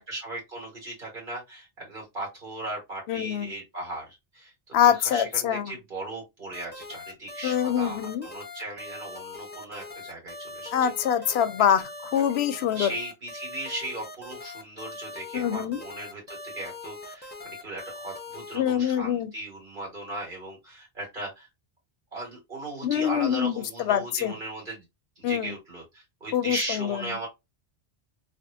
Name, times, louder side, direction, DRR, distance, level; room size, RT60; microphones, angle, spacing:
voice 1, 0.0-4.5 4.8-10.9 12.5-21.5 22.1-24.8 25.2-27.3, right 1 dB, 55° right, 2.1 m, -37 dB
voice 2, 3.1-3.5 4.7-5.7 7.4-8.3 10.7-11.8 12.1-12.9 15.3-15.8 18.5-19.3 22.8-24.4 25.2-25.5 26.3-27.0, left 9 dB, 85° left, 0.8 m, -24 dB
sound 1, 6.5-18.6, left 3 dB, 15° left, 0.4 m, -41 dB
3.5 x 2.4 x 2.6 m
omnidirectional pair, 1.0 m